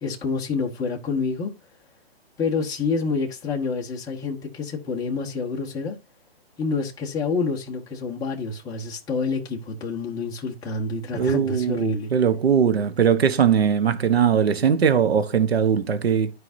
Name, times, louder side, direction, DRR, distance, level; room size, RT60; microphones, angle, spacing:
voice 1, 0.0-1.5 2.4-6.0 6.6-12.1, left 4 dB, 10° left, 1.2 m, -28 dB
voice 2, 11.1-16.3, right 7 dB, 75° right, 1.3 m, -20 dB
13.0 x 4.8 x 2.7 m
hypercardioid pair, 145°, 31 cm